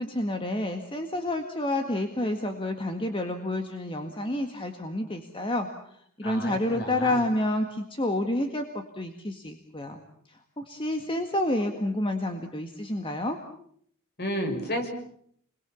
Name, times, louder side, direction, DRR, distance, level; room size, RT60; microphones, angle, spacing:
voice 1, 0.0-5.7 6.2-10.0 10.3-13.4, left 1 dB, 25° left, 5 dB, 1.9 m, -29 dB
voice 2, 6.2-7.2 14.2-14.9, equal, 50° left, 5 dB, 6.2 m, -31 dB
29.5 x 22.5 x 7.2 m, 0.67 s
head